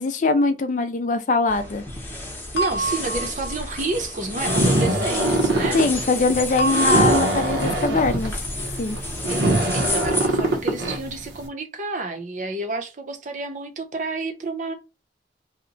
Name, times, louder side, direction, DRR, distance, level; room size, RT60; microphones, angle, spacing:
voice 1, 0.0-1.8 5.7-8.4 8.8-9.0, left 3 dB, 45° left, 0.4 m, -22 dB
sound 1, 1.5-10.3, left 2 dB, 10° left, 0.7 m, -31 dB
voice 2, 2.5-5.8 9.3-9.4 9.7-14.7, right 3 dB, 45° right, 0.6 m, -30 dB
sound 2, 2.6-3.9 6.6-7.8, right 3 dB, 75° left, 0.7 m, -28 dB
sound 3, 4.4-11.4, right 1 dB, 85° right, 0.9 m, -22 dB
2.8 x 2.1 x 3.8 m
head